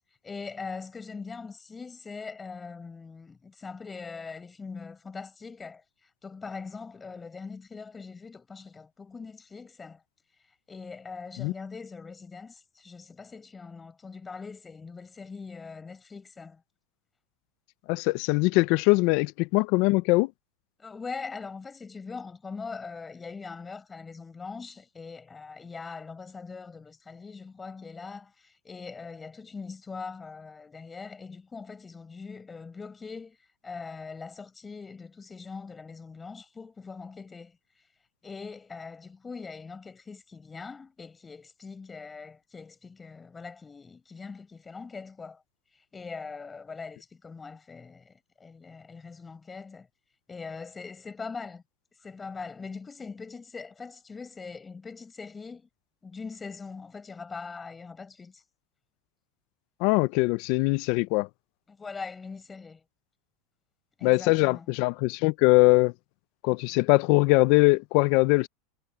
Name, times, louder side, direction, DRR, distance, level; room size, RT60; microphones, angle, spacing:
voice 1, 0.2-5.8 6.2-10.0 10.7-16.6 20.8-33.4 33.6-37.6 38.2-45.4 45.9-49.9 50.3-51.6 52.0-55.7 56.0-58.4 61.7-62.8 64.0-64.7, left 4 dB, 15° left, 6.3 m, -42 dB
voice 2, 17.9-20.3 59.8-61.3 64.0-65.9 66.4-68.5, left 24 dB, 60° left, 0.6 m, -22 dB
supercardioid pair, 120°, 0 cm